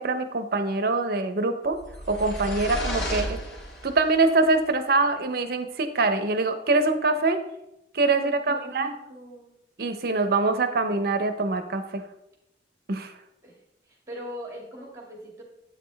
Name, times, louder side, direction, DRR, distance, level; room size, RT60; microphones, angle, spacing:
voice 1, 0.0-1.8 2.1-3.4 3.8-7.4 7.9-8.9 9.8-12.0 12.9-13.1, right 3 dB, 60° right, 9 dB, 0.7 m, -24 dB
sound 1, 1.7-4.1, equal, 90° left, 1.9 m, -32 dB
voice 2, 8.0-9.6 10.5-10.6 13.4-15.4, equal, 20° right, -1 dB, 2.2 m, -41 dB
8.4 x 6.6 x 3.3 m, 0.84 s
head